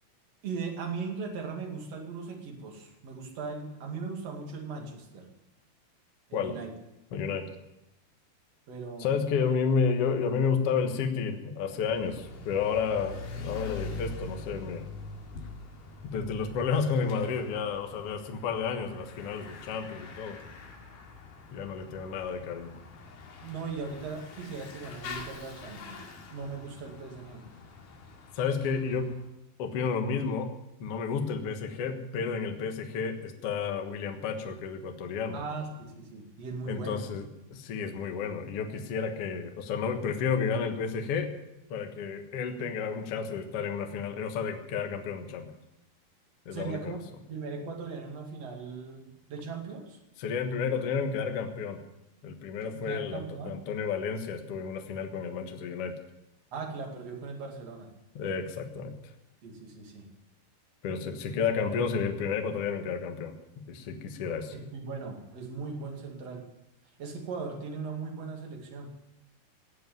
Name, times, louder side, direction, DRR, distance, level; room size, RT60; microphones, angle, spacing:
voice 1, 0.4-5.3 6.3-6.7 8.7-9.2 23.4-27.4 35.3-37.1 46.5-47.0 47.3-50.0 52.7-53.6 56.5-57.9 59.4-60.1 64.5-66.5 67.0-69.0, right 4 dB, 45° right, 2 dB, 3.1 m, -38 dB
voice 2, 7.1-7.4 9.0-14.9 16.0-20.4 21.5-22.7 28.3-29.1 29.6-30.5 30.8-35.4 36.7-41.3 41.7-45.5 46.5-46.9 50.2-51.8 52.2-55.9 58.2-58.9 60.8-63.3 63.7-64.5, left 6 dB, 55° left, 5 dB, 1.7 m, -31 dB
Bicycle / Mechanisms, 11.7-29.3, left 3 dB, 70° left, 4.0 m, -44 dB
17.0 x 8.2 x 9.5 m, 0.90 s
omnidirectional pair, 4.6 m